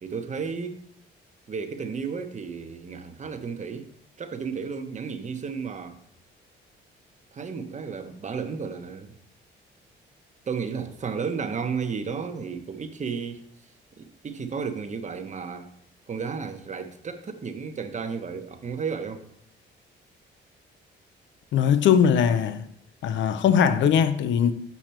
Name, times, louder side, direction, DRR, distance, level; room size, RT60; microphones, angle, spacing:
voice 1, 0.0-0.8 1.5-3.9 4.2-6.0 7.3-9.2 10.5-13.4 14.0-15.7 16.1-19.2, right 5 dB, 35° right, 0.9 m, -33 dB
voice 2, 21.5-22.6 23.0-24.5, left 8 dB, 70° left, 0.6 m, -20 dB
7.0 x 5.9 x 4.5 m
cardioid pair, 90°, 20 cm